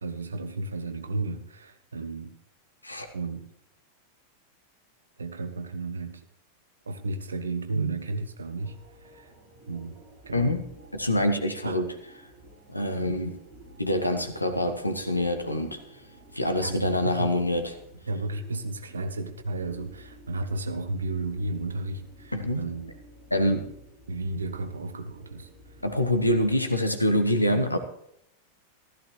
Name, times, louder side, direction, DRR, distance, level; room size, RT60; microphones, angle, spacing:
voice 1, 0.0-2.4 3.1-3.5 5.2-6.2 6.9-9.3 9.7-10.0 10.3-10.6 11.6-11.9 16.6-17.4 18.1-22.9 24.1-25.5, right 2 dB, 75° right, 9 dB, 1.0 m, -33 dB
sound 1, 8.5-26.5, right 1 dB, 45° right, 5.4 m, -52 dB
voice 2, 10.3-10.6 10.9-11.9 12.7-13.4 13.8-15.8 16.3-17.6 22.3-22.6 23.3-23.7 25.8-27.8, left 1 dB, 85° left, 7 dB, 1.2 m, -25 dB
14.5 x 13.5 x 3.1 m, 0.75 s
figure-of-eight pair, 90°, 0 cm